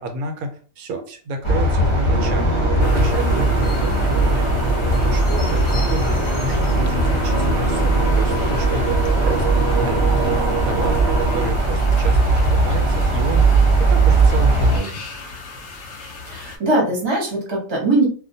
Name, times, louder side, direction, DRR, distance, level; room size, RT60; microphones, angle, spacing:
voice 1, 0.0-2.5 2.8-9.0 9.2-12.2 12.5-15.0, right 1 dB, 90° right, 5 dB, 1.1 m, -30 dB
sound 1, 1.4-14.8, right 2 dB, 35° left, 0.5 m, -19 dB
sound 2, 2.1-11.5, right 4 dB, 60° right, 0.8 m, -26 dB
sound 3, 2.8-16.6, left 3 dB, 65° left, 0.8 m, -36 dB
voice 2, 16.3-18.1, right 2 dB, 25° right, -2 dB, 0.7 m, -20 dB
2.4 x 2.1 x 2.6 m, 0.41 s
omnidirectional pair, 1.5 m